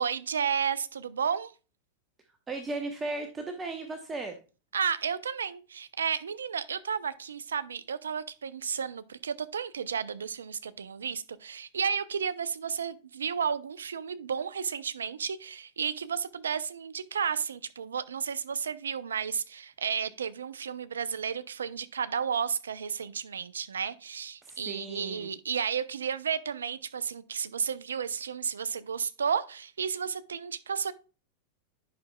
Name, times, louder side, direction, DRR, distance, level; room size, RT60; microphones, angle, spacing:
voice 1, 0.0-1.5 4.7-30.9, right 7 dB, 70° right, 0.4 m, -32 dB
voice 2, 2.5-4.3 24.4-25.3, right 3 dB, 20° right, 0.9 m, -36 dB
10.0 x 5.9 x 2.2 m
figure-of-eight pair, 90°, 0 cm